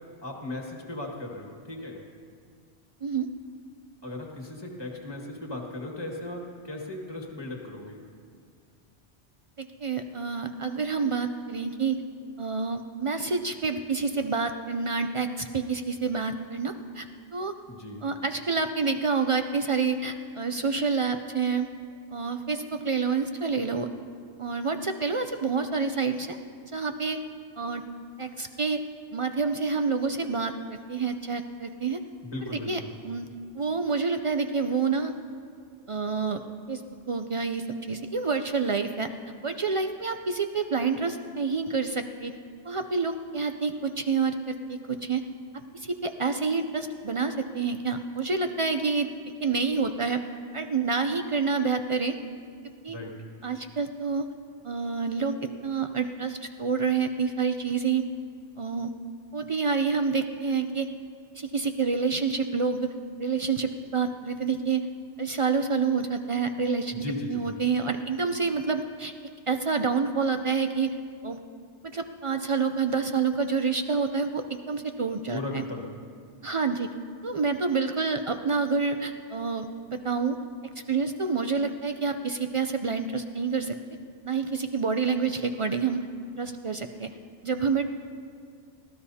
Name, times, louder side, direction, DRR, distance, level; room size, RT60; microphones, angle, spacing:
voice 1, 0.2-2.0 4.0-8.0 17.7-18.0 32.2-32.9 52.9-53.1 66.9-67.6 75.3-75.9, left 2 dB, 20° left, 0 dB, 1.8 m, -37 dB
voice 2, 9.6-12.0 12.4-17.1 17.3-17.5 18.0-21.7 22.1-23.9 24.4-26.4 26.6-27.2 27.6-27.8 28.2-28.8 29.1-32.0 32.4-33.3 33.5-35.1 35.9-36.4 36.7-36.8 37.1-39.1 39.4-42.3 42.6-45.2 45.7-49.1 49.4-50.2 50.5-52.2 52.8-53.0 53.4-54.3 54.6-58.0 58.6-58.9 59.3-60.9 61.3-62.9 63.2-64.8 65.2-67.0 67.3-69.1 69.5-70.9 71.2-71.4 71.9-75.6 76.4-76.9 77.2-80.4 80.9-83.7 84.2-86.1 86.4-87.1 87.4-87.8, right 5 dB, 55° right, 7 dB, 0.3 m, -28 dB
22.5 x 16.0 x 2.8 m, 2.2 s
omnidirectional pair, 1.2 m